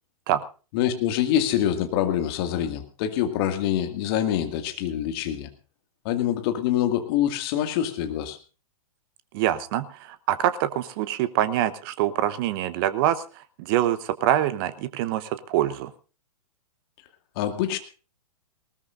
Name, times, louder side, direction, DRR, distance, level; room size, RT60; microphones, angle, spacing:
voice 1, 0.7-5.5 6.0-8.4 17.4-17.8, left 11 dB, 40° left, 7 dB, 2.2 m, -25 dB
voice 2, 9.3-15.9, right 12 dB, 35° right, 13 dB, 1.0 m, -25 dB
19.5 x 19.5 x 2.6 m, 0.35 s
figure-of-eight pair, 115°, 19 cm